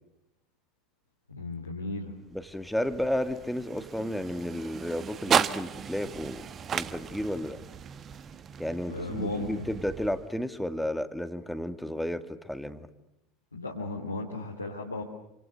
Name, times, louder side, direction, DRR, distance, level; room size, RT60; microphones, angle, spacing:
voice 1, 1.3-2.1 8.8-9.7 13.5-15.0, left 2 dB, 85° left, -1 dB, 2.9 m, -35 dB
voice 2, 2.3-6.4 6.7-7.6 8.6-12.9, left 1 dB, ahead, 10 dB, 2.1 m, -32 dB
sound 1, 2.3-10.6, right 8 dB, 30° right, 1.3 m, -34 dB
28.5 x 26.0 x 6.7 m, 0.89 s
figure-of-eight pair, 70°, 0 cm